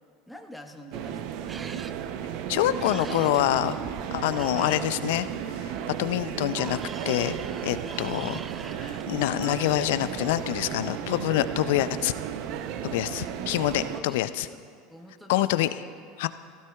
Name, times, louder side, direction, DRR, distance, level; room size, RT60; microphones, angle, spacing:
voice 1, 0.3-1.4 13.0-15.5, equal, ahead, 2 dB, 1.3 m, -47 dB
sound 1, 0.9-14.0, right 9 dB, 65° right, 0.6 m, -34 dB
sound 2, 1.5-1.9 2.8-4.8 6.2-9.1, right 5 dB, 25° right, 0.4 m, -43 dB
voice 2, 2.5-3.8 4.1-5.3 5.6-5.7 6.0-6.8 7.1-7.4 7.6-12.1 12.8-14.5 15.3-15.7 16.2-16.3, left 14 dB, 75° left, 13 dB, 0.4 m, -26 dB
16.0 x 15.0 x 2.3 m, 2.1 s
hypercardioid pair, 95°, 0 cm